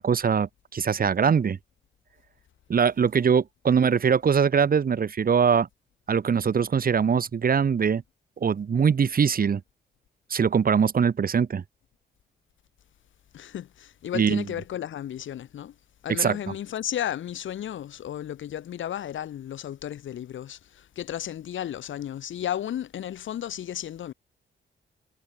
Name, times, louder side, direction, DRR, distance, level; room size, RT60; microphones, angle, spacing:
voice 1, 0.0-1.6 2.7-5.7 6.1-8.0 8.4-9.6 10.3-11.6 14.1-14.5 16.2-16.5, right 6 dB, 50° right, 5.9 m, -22 dB
voice 2, 13.3-15.7 16.0-24.1, left 10 dB, 85° left, 5.9 m, -34 dB
cardioid pair, 125°, 19 cm